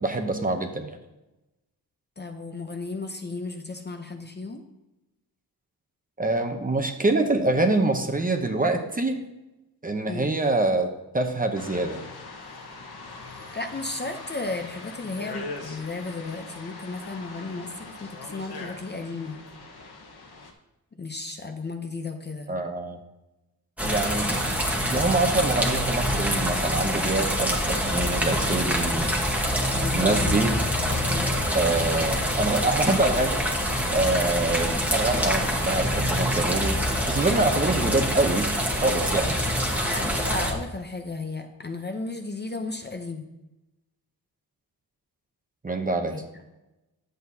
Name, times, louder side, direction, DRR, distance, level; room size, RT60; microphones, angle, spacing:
voice 1, 0.0-1.0 6.2-9.2 9.8-12.0 22.5-23.0 23.8-24.4 24.9-29.1 29.9-30.5 31.5-33.4 33.9-38.5 38.8-39.4 45.6-46.1, right 2 dB, 25° right, 4 dB, 0.7 m, -25 dB
voice 2, 2.2-4.6 10.1-10.3 13.5-19.4 20.9-22.5 29.7-30.5 30.8-31.4 34.6-34.9 39.7-43.3 46.1-46.2, left 3 dB, 30° left, 5 dB, 0.6 m, -34 dB
sound 1, 11.5-20.5, left 3 dB, 80° left, 1.3 m, -41 dB
sound 2, 23.8-40.5, equal, 5° right, 1.2 m, -25 dB
10.5 x 7.8 x 2.7 m, 0.99 s
wide cardioid pair, 150°, 38 cm